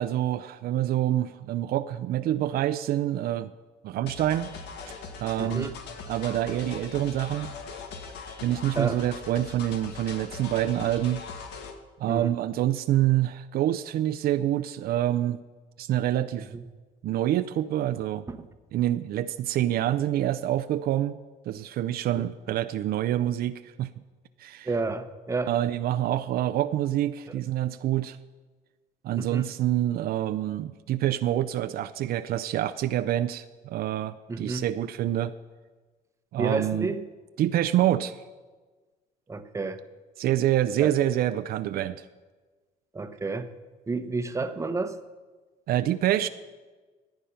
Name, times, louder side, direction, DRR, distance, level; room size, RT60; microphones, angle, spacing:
voice 1, 0.0-3.5 3.8-4.5 5.2-5.7 6.1-7.5 8.4-11.2 12.0-15.4 15.8-16.5 17.0-18.2 18.7-21.2 21.5-23.9 24.4-24.7 25.5-28.2 29.0-35.3 36.3-36.9 37.4-38.2 40.2-42.1 45.7-46.3, right 12 dB, 65° right, 11 dB, 0.5 m, -26 dB
sound 1, 4.1-11.8, left 5 dB, 85° left, 1.4 m, -40 dB
voice 2, 5.4-5.7 8.7-9.0 12.1-12.3 16.4-16.6 18.3-18.5 22.2-22.3 24.6-25.5 29.2-29.5 34.3-34.7 36.4-37.0 39.3-39.8 40.8-40.9 42.9-43.5 43.9-45.0, right 3 dB, 15° right, 9 dB, 0.8 m, -30 dB
14.0 x 9.0 x 5.7 m, 1.3 s
cardioid pair, 110°, 17 cm